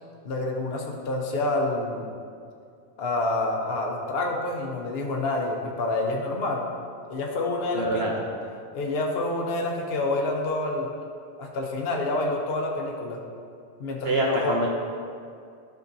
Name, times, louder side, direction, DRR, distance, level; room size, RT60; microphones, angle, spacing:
voice 1, 0.2-2.1 3.0-6.7 7.1-8.1 8.7-10.9 11.4-13.2 13.8-14.6, left 2 dB, 55° left, 0 dB, 1.0 m, -28 dB
voice 2, 7.7-8.2 14.0-14.7, right 2 dB, 60° right, -1 dB, 0.9 m, -25 dB
12.0 x 5.8 x 2.7 m, 2.4 s
omnidirectional pair, 1.3 m